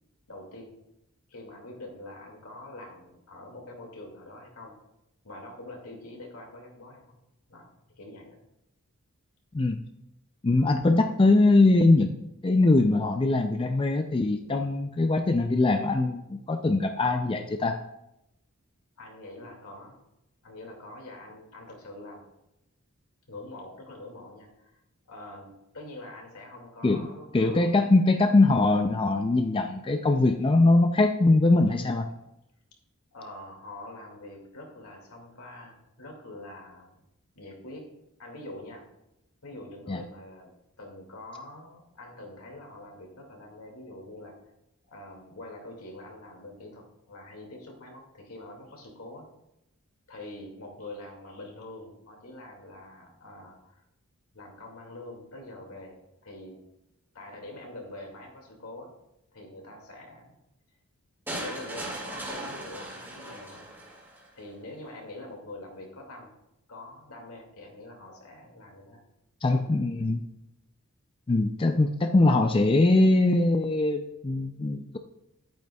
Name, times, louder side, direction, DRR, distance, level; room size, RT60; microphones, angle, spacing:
voice 1, 0.3-0.7 1.3-4.7 5.2-7.2 7.5-7.7 8.0-8.4 19.0-20.0 20.4-22.3 23.3-24.8 25.1-27.8 33.1-37.0 37.3-37.9 38.2-38.9 39.4-44.4 44.9-49.3 50.1-53.8 54.3-56.6 57.1-58.9 59.3-60.4 61.4-63.7 64.3-66.3 66.7-69.0 69.5-69.9, left 2 dB, 80° left, 1 dB, 2.2 m, -45 dB
voice 2, 10.4-17.8 26.8-27.0 27.3-32.1 39.9-40.0 69.4-70.3 71.3-75.0, left 2 dB, 25° left, 6 dB, 0.4 m, -22 dB
sound 1, 61.3-64.3, right 1 dB, 10° right, 2.1 m, -38 dB
11.0 x 8.8 x 2.3 m, 0.86 s
head